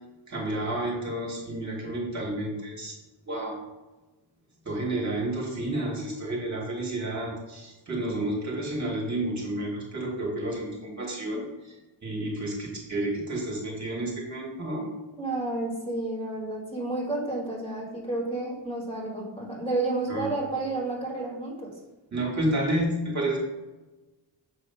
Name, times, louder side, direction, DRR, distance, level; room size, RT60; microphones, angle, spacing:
voice 1, 0.3-2.9 3.2-3.7 4.6-11.7 12.0-14.9 20.1-20.3 22.1-23.4, right 1 dB, 40° right, -2 dB, 1.5 m, -30 dB
voice 2, 15.2-21.7, right 2 dB, 10° left, -3 dB, 1.5 m, -31 dB
6.5 x 2.9 x 5.5 m, 1.1 s
wide cardioid pair, 150°, 45 cm